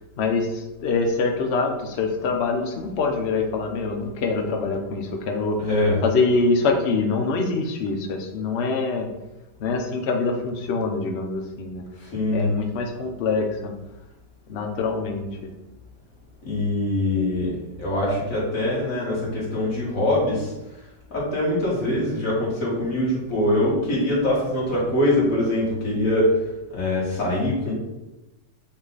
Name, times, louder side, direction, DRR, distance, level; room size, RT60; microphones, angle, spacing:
voice 1, 0.2-5.6 6.0-9.1 9.6-11.8 12.3-13.7 14.5-15.5, left 3 dB, 75° left, 2 dB, 0.6 m, -24 dB
voice 2, 5.6-6.0 12.0-12.5 16.4-20.5 21.1-26.4 26.7-27.7, left 1 dB, 45° left, -6 dB, 2.5 m, -23 dB
8.5 x 3.2 x 4.0 m, 1.0 s
omnidirectional pair, 2.1 m